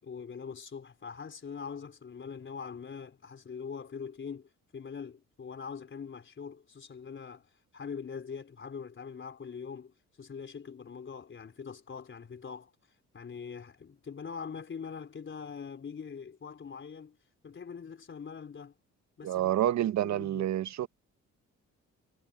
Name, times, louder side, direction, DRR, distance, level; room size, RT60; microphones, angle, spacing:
voice 1, 0.0-12.7 13.1-17.2 17.4-18.7 19.2-19.5 19.8-20.6, left 6 dB, 40° left, 4.1 m, -43 dB
voice 2, 19.2-20.9, right 12 dB, 65° right, 0.9 m, -28 dB
cardioid pair, 90°, 30 cm